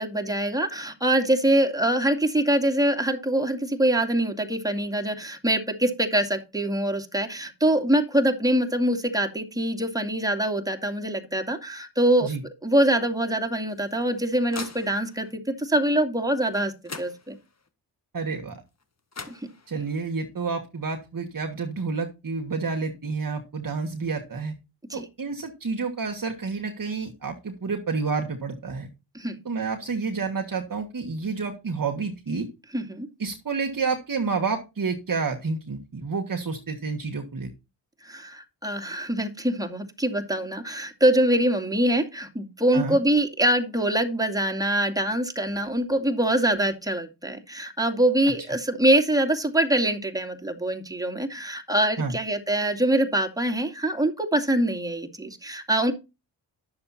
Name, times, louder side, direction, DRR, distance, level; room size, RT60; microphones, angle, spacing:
voice 1, 0.0-12.3 12.6-16.7 17.0-17.4 24.9-25.1 29.1-29.4 32.7-33.1 38.0-55.9, right 1 dB, 10° right, 3 dB, 2.4 m, -24 dB
sound 1, 13.7-15.3 16.5-16.6 16.8-17.7 18.8-18.9 19.1-20.0, left 4 dB, 35° left, 1.7 m, -41 dB
voice 2, 18.1-18.6 19.7-24.5 24.9-28.9 29.4-32.5 33.2-37.5 42.7-43.0 52.0-52.1, right 4 dB, 45° right, 3 dB, 1.6 m, -29 dB
10.5 x 6.9 x 4.2 m, 0.26 s
cardioid pair, 50°, 43 cm